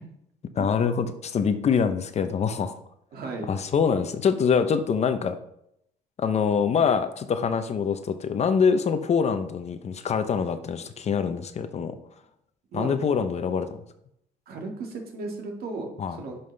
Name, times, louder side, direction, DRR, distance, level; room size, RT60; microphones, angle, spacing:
voice 1, 0.5-2.8 3.5-5.4 6.2-12.0 12.7-13.7 16.0-16.2, left 6 dB, 40° left, 10 dB, 0.7 m, -24 dB
voice 2, 3.1-3.5 12.7-12.9 14.5-16.4, right 3 dB, 65° right, 2 dB, 2.0 m, -35 dB
10.5 x 5.6 x 3.4 m, 0.76 s
cardioid pair, 110°, 17 cm